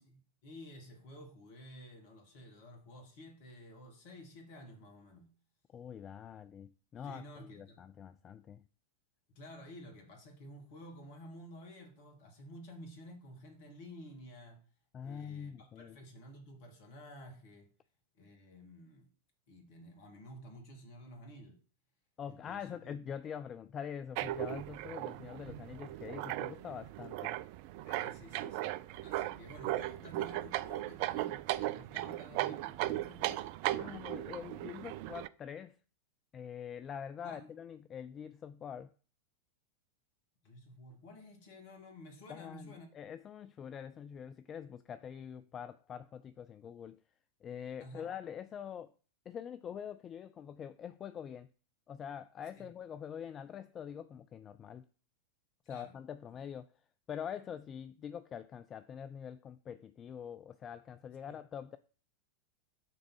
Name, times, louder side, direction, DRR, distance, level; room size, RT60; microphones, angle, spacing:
voice 1, 0.0-5.3 7.0-7.8 9.4-14.6 15.0-17.7 18.1-19.1 19.5-21.6 22.2-23.0 27.8-33.5 37.2-37.5 40.4-42.9 47.8-48.1 52.6-52.7 55.7-55.9 56.3-56.4 61.2-61.4, equal, 50° left, 2.3 m, -52 dB
voice 2, 5.7-8.6 14.9-16.0 22.2-27.4 33.7-35.8 36.3-38.9 42.3-47.0 47.4-48.9 49.3-51.5 51.9-54.9 55.7-56.7 57.1-61.8, left 8 dB, 25° left, 0.4 m, -45 dB
sound 1, 24.2-35.3, right 15 dB, 45° right, 0.3 m, -37 dB
6.7 x 3.7 x 6.3 m
figure-of-eight pair, 90°, 0 cm